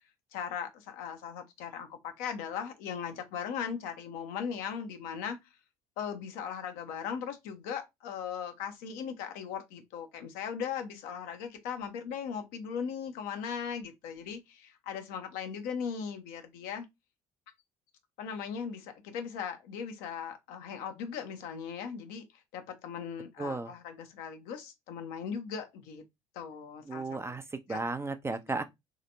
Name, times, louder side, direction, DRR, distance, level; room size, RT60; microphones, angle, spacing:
voice 1, 0.3-5.4 6.0-16.9 18.2-22.2 22.5-26.0 26.3-27.2 27.7-27.8, left 7 dB, 60° left, 0.7 m, -38 dB
voice 2, 23.4-23.7 26.9-28.6, right 3 dB, 15° right, 0.4 m, -34 dB
3.2 x 2.8 x 2.6 m
figure-of-eight pair, 55°, 17 cm